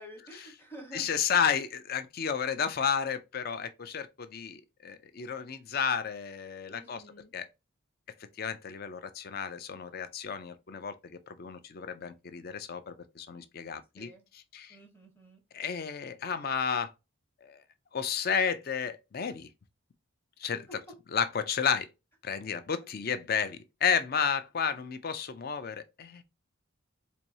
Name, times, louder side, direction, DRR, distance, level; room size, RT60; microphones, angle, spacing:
voice 1, 0.0-1.1 6.7-7.3 14.0-14.2 14.7-15.4, equal, 10° left, 0.9 m, -49 dB
voice 2, 0.9-7.0 7.3-7.5 8.4-10.9 11.3-14.1 14.5-14.8 15.5-16.9 17.4-17.6 17.9-19.5 20.4-20.6 21.1-21.9 22.2-26.2, left 7 dB, 45° left, 0.4 m, -32 dB
4.3 x 2.6 x 2.7 m
head